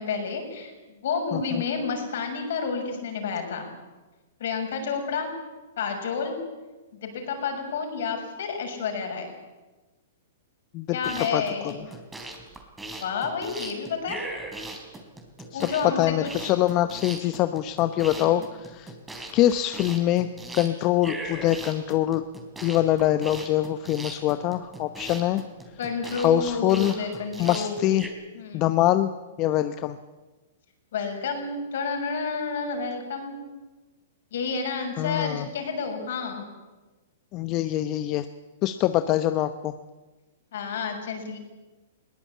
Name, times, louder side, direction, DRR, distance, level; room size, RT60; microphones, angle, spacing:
voice 1, 0.0-3.7 4.4-5.3 5.8-6.4 7.0-9.3 10.9-11.8 13.0-14.2 15.5-16.5 18.2-18.4 25.8-27.9 28.3-28.7 30.9-33.4 34.3-36.4 40.5-41.4, left 5 dB, 65° left, 3 dB, 6.6 m, -30 dB
voice 2, 1.3-1.6 10.7-11.0 11.3-11.8 15.5-15.6 16.0-18.9 19.3-20.3 20.5-22.2 22.6-25.4 26.2-27.1 27.4-28.1 28.5-29.1 29.4-30.0 35.0-35.5 37.3-38.3 38.6-39.7, left 13 dB, 35° left, 10 dB, 0.9 m, -24 dB
sound 1, 10.9-28.1, right 2 dB, 10° right, 3.8 m, -39 dB
21.0 x 18.0 x 8.6 m, 1.2 s
hypercardioid pair, 125°, 0 cm